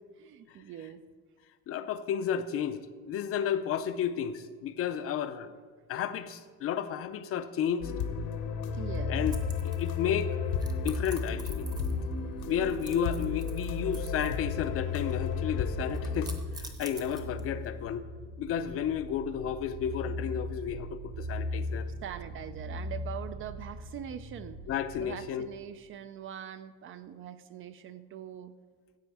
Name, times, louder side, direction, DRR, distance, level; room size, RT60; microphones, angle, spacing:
voice 1, 0.2-1.0 8.7-9.2 22.0-24.6 25.0-28.5, right 9 dB, 40° right, 12 dB, 0.4 m, -42 dB
voice 2, 1.7-5.5 5.9-7.9 9.1-9.3 9.6-11.7 12.5-18.1 18.4-21.9 24.7-25.5, left 8 dB, 40° left, 11 dB, 0.5 m, -32 dB
sound 1, 7.8-16.4, left 7 dB, 75° left, 1.1 m, -34 dB
sound 2, 8.7-25.2, left 1 dB, 70° right, 3.0 m, -39 dB
sound 3, 9.3-10.1 10.6-12.1 12.4-14.5 14.8-15.3 15.9-17.7, right 2 dB, 10° right, 0.8 m, -48 dB
15.5 x 7.7 x 4.7 m, 1.5 s
cardioid pair, 170°, 35 cm